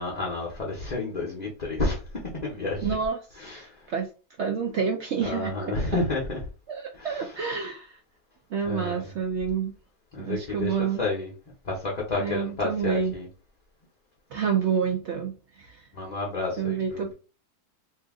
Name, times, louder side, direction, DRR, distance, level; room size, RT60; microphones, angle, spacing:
voice 1, 0.0-2.0 2.4-2.9 3.4-3.9 5.2-6.4 6.9-7.3 8.6-9.1 10.1-11.3 11.6-13.3 15.9-17.1, left 2 dB, 40° left, 0.6 m, -30 dB
voice 2, 2.8-4.1 4.4-5.5 5.9-6.0 6.7-8.0 8.5-9.7 10.2-11.0 12.2-13.2 14.3-15.8 16.6-17.1, right 6 dB, 65° right, 0.7 m, -28 dB
2.7 x 2.5 x 3.5 m
omnidirectional pair, 1.6 m